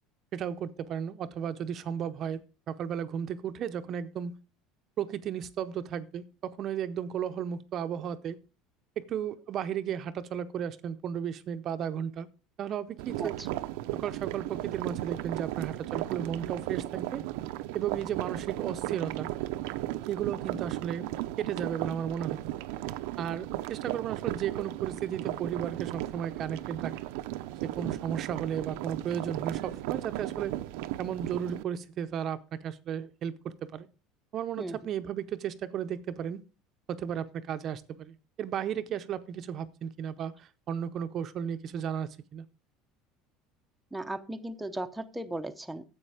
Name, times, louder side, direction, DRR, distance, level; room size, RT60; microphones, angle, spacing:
voice 1, 0.3-4.3 5.0-8.4 9.0-12.3 12.6-13.4 13.9-17.2 17.7-19.3 20.1-21.1 21.4-22.4 23.2-27.0 27.6-30.5 31.0-33.9 34.3-36.4 36.9-42.4, right 9 dB, 40° right, 11 dB, 0.7 m, -34 dB
sound 1, 13.0-31.6, right 15 dB, 80° right, 0.6 m, -35 dB
voice 2, 43.9-45.8, right 1 dB, 5° right, 6 dB, 0.7 m, -36 dB
10.0 x 7.9 x 4.9 m, 0.34 s
cardioid pair, 140°, 0 cm